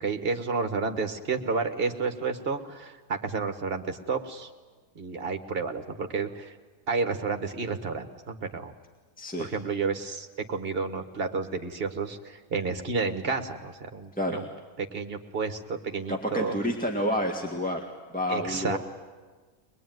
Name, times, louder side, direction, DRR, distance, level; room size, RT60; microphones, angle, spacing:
voice 1, 0.0-4.5 4.9-6.5 6.9-8.7 9.4-14.5 14.8-16.6 18.3-18.8, right 4 dB, 40° right, 6 dB, 1.6 m, -31 dB
voice 2, 9.2-9.5 14.1-14.4 16.1-18.8, left 1 dB, 5° left, 1 dB, 1.7 m, -29 dB
22.5 x 21.5 x 9.3 m, 1.4 s
omnidirectional pair, 1.6 m